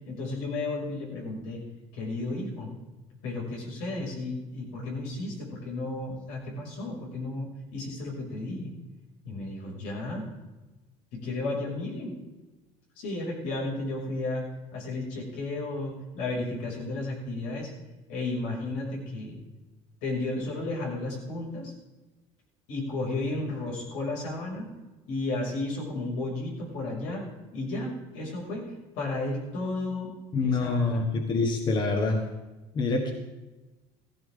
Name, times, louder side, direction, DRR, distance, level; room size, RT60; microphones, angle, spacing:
voice 1, 0.0-1.6 1.9-2.7 3.2-8.7 9.2-10.3 11.1-12.2 13.0-14.5 14.7-17.7 18.1-19.4 20.0-21.7 22.7-24.7 25.1-27.3 27.5-30.1 30.4-31.0, left 2 dB, 90° left, -3 dB, 6.2 m, -33 dB
voice 2, 30.3-32.2 32.7-33.1, left 3 dB, 35° left, 3 dB, 1.6 m, -26 dB
15.5 x 15.0 x 3.8 m, 1.1 s
cardioid pair, 130°, 13 cm